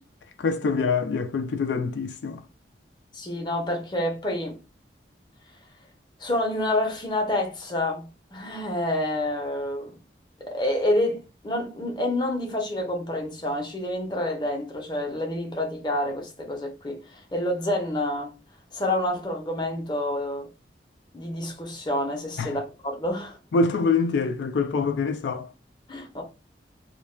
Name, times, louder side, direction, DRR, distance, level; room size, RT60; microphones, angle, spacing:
voice 1, 0.4-2.4 22.4-22.6 23.5-25.5, left 4 dB, 85° left, 0.4 m, -25 dB
voice 2, 3.1-4.6 6.2-9.9 10.5-18.3 18.7-20.5 21.1-23.4 25.9-26.2, left 1 dB, 25° left, 0.6 m, -28 dB
2.2 x 2.2 x 3.1 m
head